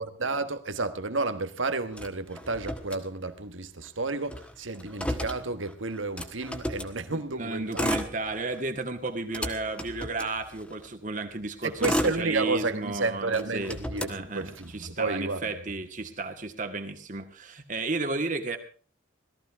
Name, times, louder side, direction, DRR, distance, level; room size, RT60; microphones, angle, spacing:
voice 1, 0.0-7.9 11.6-15.6, right 3 dB, 85° right, 10 dB, 1.5 m, -31 dB
Motor vehicle (road), 1.9-3.5 3.8-3.9 4.2-7.0 7.6-8.7 9.1-10.9 11.5-12.9 13.3-14.9, equal, 5° left, 1.4 m, -34 dB
voice 2, 7.1-13.8 14.1-18.6, right 3 dB, 40° right, 6 dB, 1.9 m, -33 dB
18.0 x 14.0 x 4.8 m, 0.39 s
head